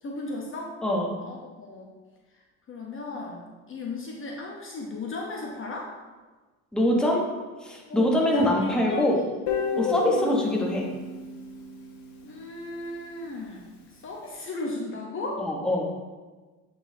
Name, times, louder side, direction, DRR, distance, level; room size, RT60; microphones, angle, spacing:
voice 1, 0.0-0.7 1.2-1.9 2.3-2.4 2.7-5.9 7.9-9.3 9.7-10.0 12.2-15.5, left 2 dB, 30° left, -1 dB, 0.8 m, -36 dB
voice 2, 6.7-7.2 7.6-9.2 9.8-10.9 15.4-15.9, left 1 dB, ahead, -2 dB, 1.0 m, -24 dB
Guitar, 9.5-12.4, left 5 dB, 70° left, 1.2 m, -31 dB
8.7 x 4.2 x 2.7 m, 1.3 s
supercardioid pair, 105°, 41 cm